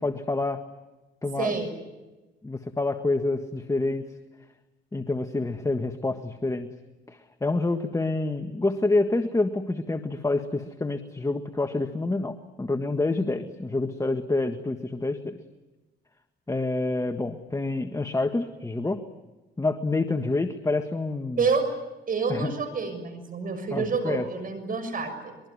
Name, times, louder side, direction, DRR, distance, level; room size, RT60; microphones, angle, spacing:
voice 1, 0.0-0.6 1.2-1.6 2.4-4.1 4.9-6.7 7.1-15.4 16.5-19.0 19.6-21.4 22.3-22.5 23.7-24.2, left 2 dB, 15° left, 7 dB, 1.6 m, -27 dB
voice 2, 1.4-1.7 21.4-21.7 22.1-25.3, right 5 dB, 45° right, 8 dB, 6.6 m, -28 dB
24.0 x 22.5 x 9.7 m, 1.1 s
cardioid pair, 90°, 20 cm